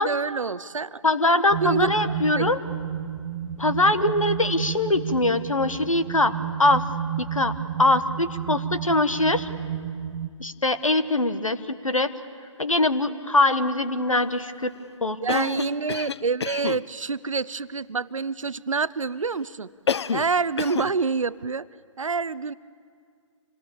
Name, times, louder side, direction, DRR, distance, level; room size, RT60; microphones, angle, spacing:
voice 1, 0.0-1.0 1.6-1.9 2.4-2.5 15.2-19.7 20.1-21.7 22.0-22.5, right 4 dB, 75° right, 18 dB, 0.6 m, -27 dB
voice 2, 1.0-2.6 3.6-6.3 6.6-6.8 7.2-9.5 10.4-12.1 12.6-14.7 15.0-15.5, left 2 dB, 85° left, 10 dB, 1.3 m, -22 dB
sound 1, 1.5-10.3, right 9 dB, 25° right, 0.8 m, -31 dB
Cough, 15.3-16.8 19.9-20.3 20.6-20.9, left 6 dB, 55° left, 0.5 m, -28 dB
26.0 x 18.5 x 7.2 m, 2.2 s
figure-of-eight pair, 140°, 17 cm